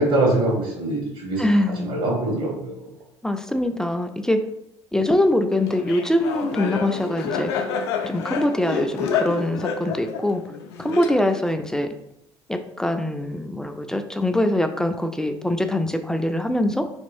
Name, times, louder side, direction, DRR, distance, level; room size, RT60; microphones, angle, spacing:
voice 1, 0.0-1.5 1.8-3.0, right 2 dB, 65° right, -2 dB, 1.1 m, -23 dB
voice 2, 1.4-1.9 3.2-4.5 4.9-7.5 8.0-10.4 10.8-11.9 12.5-16.8, left 1 dB, 5° left, 6 dB, 0.3 m, -23 dB
Laughter, 5.7-11.5, left 6 dB, 70° left, 0.5 m, -28 dB
4.2 x 2.9 x 2.6 m, 0.78 s
figure-of-eight pair, 60°, 14 cm